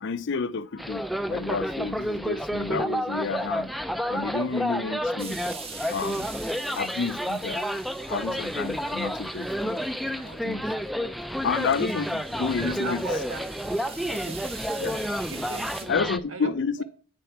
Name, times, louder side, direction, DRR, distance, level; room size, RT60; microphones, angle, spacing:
voice 1, 0.0-3.7 4.1-5.4 5.9-6.3 6.7-7.7 8.1-10.0 10.4-10.7 11.4-13.0 14.8-14.9 15.9-16.8, left 5 dB, 55° left, 0.5 m, -30 dB
sound 1, 0.8-16.2, equal, ahead, 0.4 m, -30 dB
sound 2, 5.2-10.4 10.8-10.9 11.3-15.8, right 5 dB, 25° right, 1.4 m, -44 dB
voice 2, 12.6-13.4 14.1-14.4 15.3-16.5, right 2 dB, 70° right, 1.6 m, -37 dB
8.7 x 6.6 x 5.8 m
head